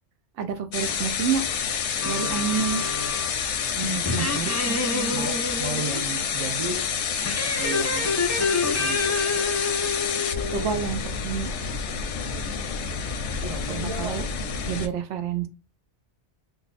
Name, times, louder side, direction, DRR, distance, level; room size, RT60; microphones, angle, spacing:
voice 1, 0.4-1.4 2.0-2.9 4.3-5.3 10.5-11.5 13.7-14.2 14.7-15.5, right 7 dB, 90° right, 0.9 m, -29 dB
sound 1, 0.7-14.9, left 6 dB, 85° left, 0.9 m, -28 dB
sound 2, 2.0-3.4 4.0-6.0 7.2-10.7, left 3 dB, 20° left, 0.4 m, -28 dB
voice 2, 3.7-4.4 5.1-6.9 7.4-8.2 8.6-9.2 13.4-14.2, right 3 dB, 50° right, 0.4 m, -34 dB
2.6 x 2.3 x 3.9 m
omnidirectional pair, 1.2 m